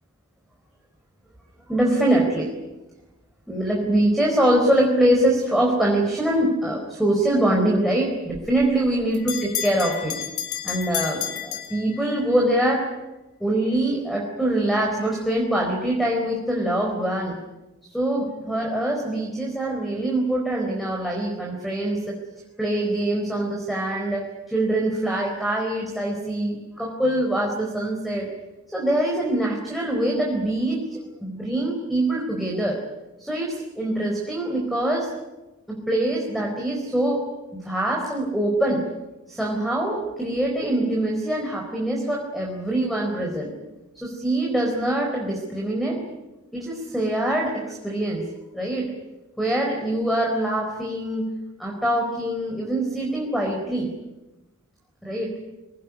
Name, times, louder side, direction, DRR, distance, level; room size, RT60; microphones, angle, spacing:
voice 1, 1.7-2.5 3.5-10.1 10.6-12.9 13.4-17.4 17.9-22.2 22.6-28.3 28.7-32.8 33.2-35.1 35.7-37.2 37.5-38.9 39.3-43.5 43.9-46.0 46.5-48.2 48.5-48.9 49.4-51.3 51.6-53.9 55.0-55.3, right 1 dB, ahead, -3 dB, 4.5 m, -24 dB
Bell, 8.3-12.4, left 11 dB, 80° left, 3.5 m, -31 dB
26.5 x 18.5 x 9.8 m, 1.0 s
head